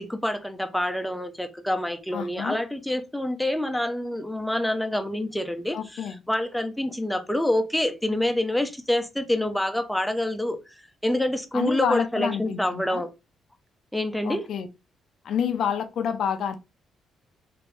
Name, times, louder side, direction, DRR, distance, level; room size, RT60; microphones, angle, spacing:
voice 1, 0.0-10.6 11.0-13.1 13.9-14.5, left 1 dB, 5° left, 0.6 m, -27 dB
voice 2, 2.1-2.6 5.7-6.2 11.5-13.0 14.2-14.7 15.2-16.6, left 8 dB, 70° left, 0.4 m, -28 dB
3.1 x 2.5 x 3.2 m
cardioid pair, 90°, 0 cm